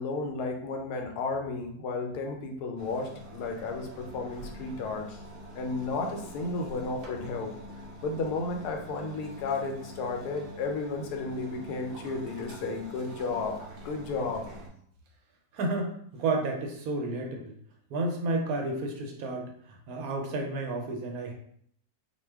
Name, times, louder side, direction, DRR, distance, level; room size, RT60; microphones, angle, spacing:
voice 1, 0.0-5.2 5.6-7.5 8.0-13.5 13.8-14.5, left 3 dB, 85° left, 3 dB, 1.1 m, -33 dB
sound 1, 2.8-14.7, equal, 55° right, 0.7 m, -45 dB
voice 2, 15.5-17.5 17.9-21.3, right 2 dB, 75° right, 2 dB, 1.0 m, -31 dB
2.6 x 2.2 x 3.3 m, 0.65 s
omnidirectional pair, 1.6 m